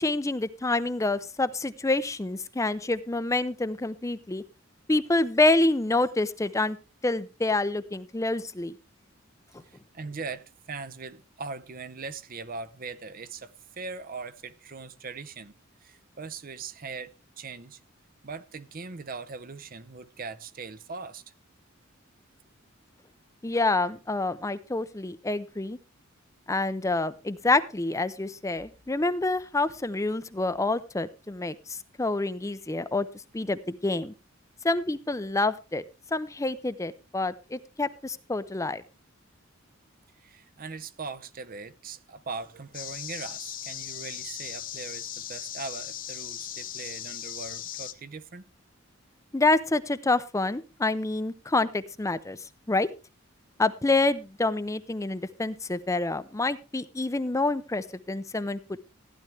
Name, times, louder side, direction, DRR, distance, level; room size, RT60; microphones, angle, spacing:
voice 1, 0.0-4.4 4.9-6.8 7.0-8.7 23.4-25.8 26.5-33.1 33.3-34.1 34.6-35.8 36.1-38.8 49.3-52.4 52.7-52.9 53.6-58.8, left 2 dB, 15° left, 0.5 m, -27 dB
voice 2, 9.6-15.5 15.8-17.8 18.2-21.2 40.2-48.5, right 4 dB, 45° right, 0.7 m, -40 dB
sound 1, 42.7-47.9, left 10 dB, 45° left, 1.0 m, -38 dB
15.5 x 10.5 x 3.4 m
head